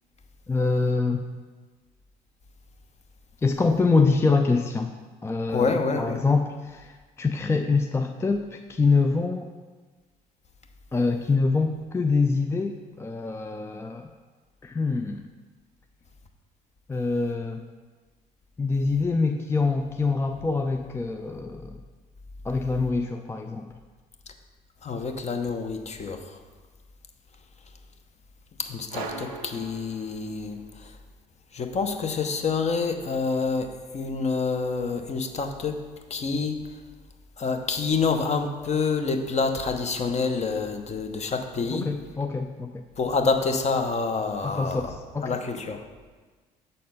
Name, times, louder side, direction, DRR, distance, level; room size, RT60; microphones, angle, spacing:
voice 1, 0.5-1.2 3.4-4.9 5.2-9.5 10.9-14.1 14.6-15.2 16.9-17.6 18.6-21.8 22.4-23.7 41.7-42.8 44.4-45.4, left 4 dB, 15° left, 5 dB, 0.4 m, -25 dB
voice 2, 5.5-6.2 24.8-26.2 28.6-30.9 31.5-35.8 36.1-36.6 37.4-41.9 43.0-44.8 45.2-45.8, left 4 dB, 35° left, 6 dB, 0.8 m, -27 dB
sound 1, 28.9-30.7, right 4 dB, 90° right, 0.6 m, -39 dB
6.6 x 4.2 x 5.3 m, 1.4 s
hypercardioid pair, 60°, 19 cm